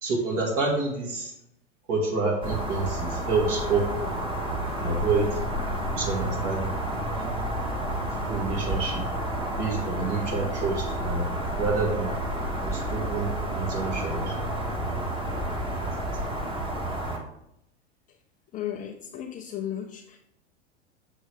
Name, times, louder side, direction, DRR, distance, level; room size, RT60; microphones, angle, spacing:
voice 1, 0.0-1.3 1.9-4.1 4.8-5.4 5.9-7.3 7.7-9.0 9.6-11.3 11.6-12.1 12.6-14.4 14.8-15.0 15.7-16.1, right 3 dB, 50° right, -1 dB, 1.9 m, -28 dB
sound 1, 2.4-17.2, right 1 dB, 15° right, 1.3 m, -30 dB
voice 2, 18.5-20.2, left 10 dB, 25° left, 3 dB, 0.5 m, -35 dB
6.5 x 6.2 x 3.3 m, 0.82 s
hypercardioid pair, 95°, 35 cm